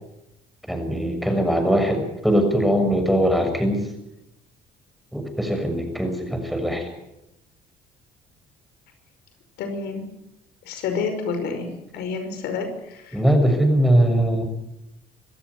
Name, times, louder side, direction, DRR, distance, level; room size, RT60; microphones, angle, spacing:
voice 1, 0.7-3.9 5.1-6.9 13.1-14.5, equal, ahead, 5 dB, 6.5 m, -21 dB
voice 2, 9.6-10.1 10.7-13.2, left 5 dB, 80° left, 7 dB, 5.6 m, -29 dB
26.0 x 15.0 x 9.6 m, 0.87 s
cardioid pair, 110°, 17 cm